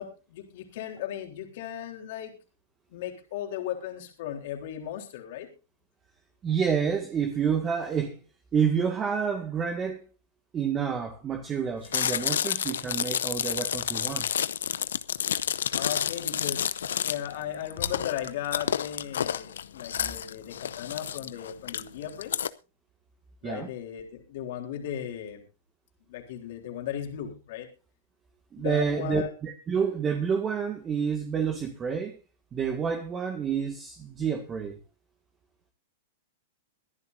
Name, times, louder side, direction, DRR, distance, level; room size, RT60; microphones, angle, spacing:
voice 1, 0.0-2.3 2.9-5.5 15.7-22.5 23.4-25.4 26.1-27.7 28.6-29.3, left 10 dB, 60° left, 3.6 m, -36 dB
voice 2, 6.4-8.2 8.5-10.0 10.5-14.3 23.4-23.7 28.5-32.2 32.5-34.8, right 7 dB, 25° right, 1.9 m, -28 dB
Chewing mastication, 11.8-22.5, left 9 dB, 80° left, 0.8 m, -30 dB
23.5 x 11.0 x 2.6 m
hypercardioid pair, 125°, 0 cm